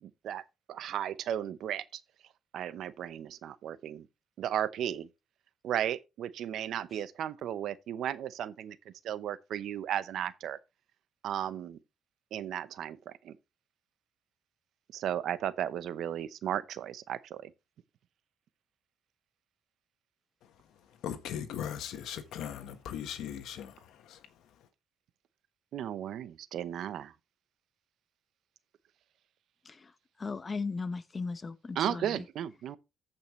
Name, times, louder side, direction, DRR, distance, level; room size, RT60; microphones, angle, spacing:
voice 1, 0.0-0.4 0.7-2.0 2.5-4.1 4.4-5.1 5.6-8.8 9.0-10.6 11.2-11.8 12.3-13.3 14.9-17.5 25.7-27.1 31.8-32.8, right 10 dB, 75° right, 0.7 m, -35 dB
voice 2, 21.0-24.3, left 9 dB, 85° left, 1.3 m, -39 dB
voice 3, 29.6-32.2, left 4 dB, 30° left, 1.0 m, -37 dB
14.5 x 5.5 x 3.1 m
cardioid pair, 90°, 0 cm